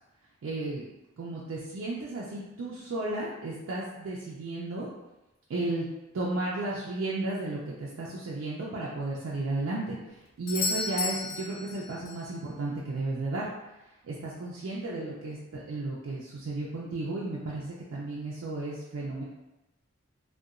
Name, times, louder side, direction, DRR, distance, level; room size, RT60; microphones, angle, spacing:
voice 1, 0.4-0.9 1.2-4.9 5.5-5.9 6.1-10.0 10.4-13.5 14.0-19.2, right 2 dB, 80° right, -5 dB, 0.4 m, -33 dB
Doorbell, 10.5-12.3 16.4-16.5, left 4 dB, 50° left, 0.3 m, -33 dB
2.8 x 2.2 x 2.4 m, 1.0 s
head